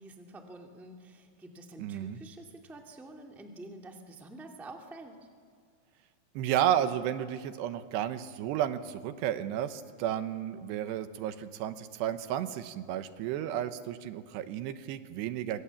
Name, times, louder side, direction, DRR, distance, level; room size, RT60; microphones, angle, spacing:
voice 1, 0.0-5.2, right 2 dB, ahead, 2 dB, 1.1 m, -48 dB
voice 2, 1.8-2.2 6.4-15.6, right 10 dB, 85° right, 10 dB, 3.2 m, -32 dB
26.5 x 25.0 x 7.2 m, 2.2 s
omnidirectional pair, 4.8 m